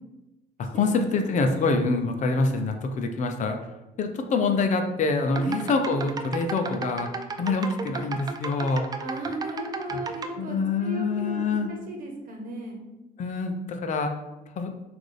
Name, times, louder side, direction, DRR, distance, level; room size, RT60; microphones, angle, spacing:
voice 1, 0.6-3.6 4.0-7.1 7.4-8.9 9.9-10.0 10.4-11.7 13.2-14.1 14.6-14.7, left 3 dB, 45° left, 5 dB, 0.6 m, -25 dB
sound 1, 5.3-10.3, right 4 dB, 25° right, 0.3 m, -34 dB
voice 2, 9.0-12.8, right 2 dB, 55° right, 1 dB, 1.1 m, -35 dB
5.9 x 2.6 x 3.3 m, 0.98 s
cardioid pair, 110°, 17 cm